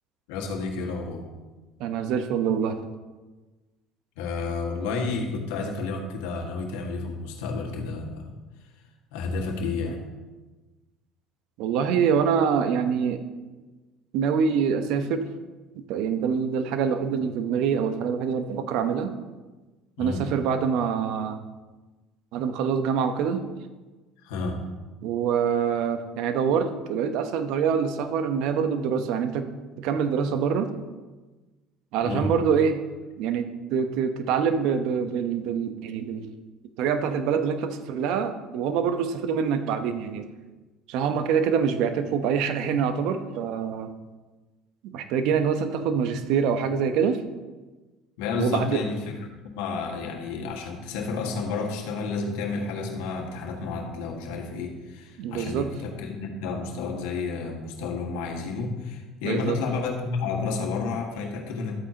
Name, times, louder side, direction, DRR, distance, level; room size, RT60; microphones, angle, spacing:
voice 1, 0.3-1.3 4.2-8.3 9.1-10.0 20.0-20.3 24.2-24.6 32.0-32.3 48.2-61.8, left 4 dB, 80° left, 1 dB, 1.7 m, -31 dB
voice 2, 1.8-2.8 11.6-13.2 14.1-15.3 15.9-19.1 20.0-21.4 22.3-23.4 25.0-29.5 29.8-30.7 31.9-32.8 33.2-36.3 36.8-40.3 40.9-43.9 44.8-47.2 48.4-48.8 55.2-55.7 59.2-59.6, right 7 dB, 70° right, 9 dB, 0.9 m, -25 dB
12.5 x 8.6 x 2.9 m, 1.2 s
supercardioid pair, 80°, 0 cm